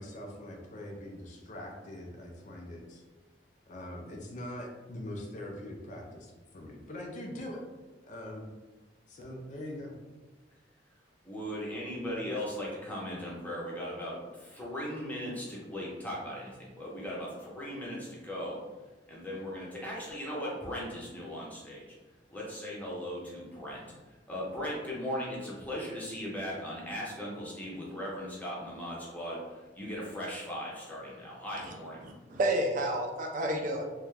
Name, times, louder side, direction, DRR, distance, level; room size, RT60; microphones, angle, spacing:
voice 1, 0.0-3.0 3.7-7.6 8.1-8.5 9.1-9.9, left 1 dB, 45° left, 0 dB, 0.4 m, -42 dB
voice 2, 11.2-18.6 19.1-21.9 22.3-23.8 24.3-32.1, equal, 10° left, -5 dB, 0.7 m, -38 dB
voice 3, 32.0-33.8, right 1 dB, 45° right, 1 dB, 0.4 m, -30 dB
2.4 x 2.2 x 3.1 m, 1.2 s
head